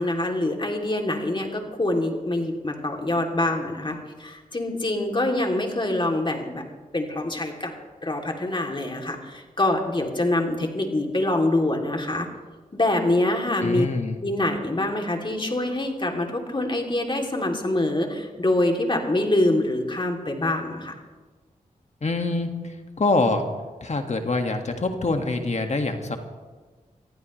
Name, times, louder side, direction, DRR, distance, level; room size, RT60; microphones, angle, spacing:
voice 1, 0.0-6.6 6.9-7.7 8.0-12.3 12.7-13.9 14.2-20.9, left 1 dB, 30° left, 2 dB, 3.0 m, -25 dB
voice 2, 13.6-14.2 22.0-22.5 23.0-23.5 23.8-26.2, left 3 dB, 50° left, 5 dB, 1.9 m, -24 dB
23.5 x 15.0 x 3.3 m, 1.3 s
cardioid pair, 45°, 15 cm